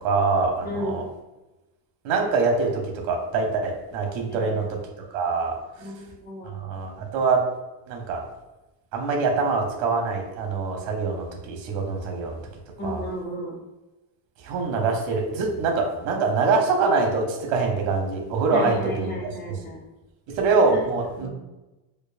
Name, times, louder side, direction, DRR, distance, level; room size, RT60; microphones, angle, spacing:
voice 1, 0.0-1.0 2.0-4.8 5.1-5.5 6.4-7.4 7.9-8.2 8.9-12.4 12.8-13.0 14.4-19.1 19.5-19.6 20.3-21.3, right 4 dB, 80° right, 2 dB, 0.9 m, -24 dB
voice 2, 0.6-1.0 4.3-4.6 5.8-6.5 12.8-13.5 18.5-19.8 20.7-20.9 21.2-21.3, equal, 20° left, -3 dB, 1.0 m, -33 dB
4.5 x 2.4 x 2.5 m, 1.0 s
cardioid pair, 120°, 47 cm